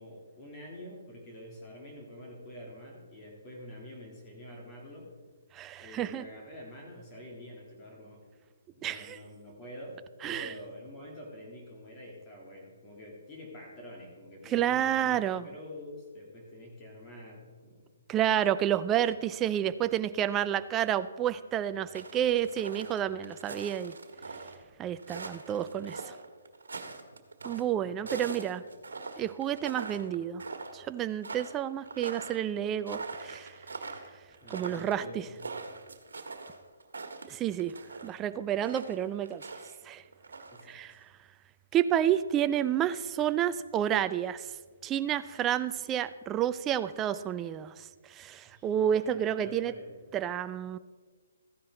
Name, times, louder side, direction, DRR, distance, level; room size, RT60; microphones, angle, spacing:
voice 1, 0.0-5.1 5.8-8.2 8.7-10.0 10.2-18.0 27.8-28.7 34.4-35.4 40.5-41.0 48.4-50.1, left 1 dB, 25° left, -1 dB, 3.0 m, -47 dB
voice 2, 5.5-6.2 8.8-9.2 10.2-10.5 14.5-15.5 18.1-23.9 24.8-26.1 27.4-28.6 29.2-30.4 30.7-33.5 34.5-35.2 37.3-37.8 38.0-39.4 39.9-40.0 40.7-40.9 41.7-44.5 44.8-49.7 50.1-50.8, right 10 dB, 20° right, 13 dB, 0.4 m, -30 dB
sound 1, 21.9-24.6 25.0-27.6 28.1-30.1 30.4-30.8 31.2-38.1 38.6-39.7 40.0-40.6, right 4 dB, 80° right, 1.5 m, -42 dB
14.5 x 10.0 x 3.9 m, 1.4 s
hypercardioid pair, 145°, 0 cm